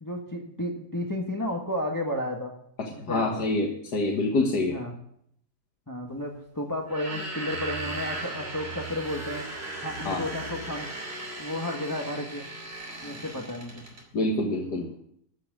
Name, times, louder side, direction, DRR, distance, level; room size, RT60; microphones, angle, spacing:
voice 1, 0.0-2.5 3.0-3.4 4.7-4.9 5.9-9.4 9.8-10.9 11.4-12.5 13.0-13.8, left 1 dB, 15° left, 0 dB, 1.4 m, -32 dB
voice 2, 2.8-3.7 3.9-4.8 10.1-10.3 14.1-14.9, left 2 dB, 85° left, 0 dB, 2.1 m, -26 dB
sound 1, 6.8-14.1, right 2 dB, 40° right, 3.1 m, -37 dB
14.5 x 6.1 x 8.9 m, 0.70 s
omnidirectional pair, 1.7 m